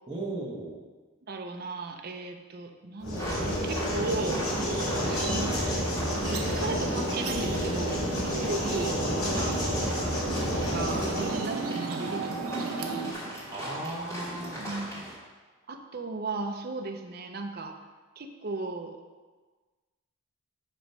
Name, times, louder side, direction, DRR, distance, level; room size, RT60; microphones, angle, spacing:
voice 1, 0.1-0.8 13.5-14.8, right 2 dB, 20° right, -6 dB, 1.1 m, -36 dB
voice 2, 1.3-4.4 5.0-13.2 14.6-15.0 15.7-17.8 18.2-19.0, right 3 dB, 45° right, 4 dB, 0.5 m, -36 dB
sound 1, 3.0-11.4, equal, 80° left, 1.7 m, -30 dB
sound 2, 3.1-15.2, equal, 15° left, 1.6 m, -40 dB
sound 3, 4.1-13.1, right 3 dB, 85° right, 0.7 m, -36 dB
8.7 x 3.0 x 5.5 m, 1.3 s
head